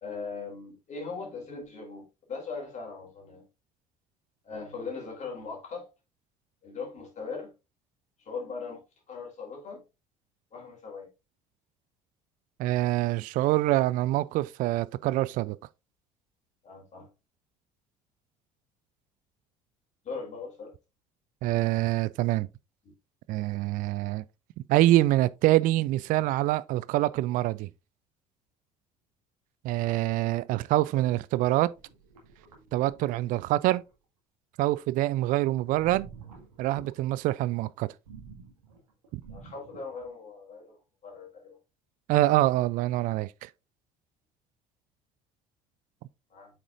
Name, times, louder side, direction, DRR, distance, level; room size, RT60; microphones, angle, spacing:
voice 1, 0.0-3.5 4.4-5.9 6.6-7.5 8.3-8.8 9.1-9.8 10.5-11.1 16.6-17.1 20.0-20.7 39.3-40.8 41.0-41.6 46.3-46.5, left 4 dB, 40° left, 3.6 m, -39 dB
voice 2, 12.6-15.6 21.4-22.5 23.3-24.2 24.7-27.7 29.6-31.7 32.7-33.8 34.6-36.1 36.6-37.9 39.1-39.2 42.1-43.5, right 16 dB, 45° right, 0.4 m, -25 dB
sound 1, 31.7-33.9 35.7-36.9 38.0-40.1, right 5 dB, 75° right, 1.9 m, -50 dB
7.7 x 6.0 x 2.5 m
figure-of-eight pair, 60°, 19 cm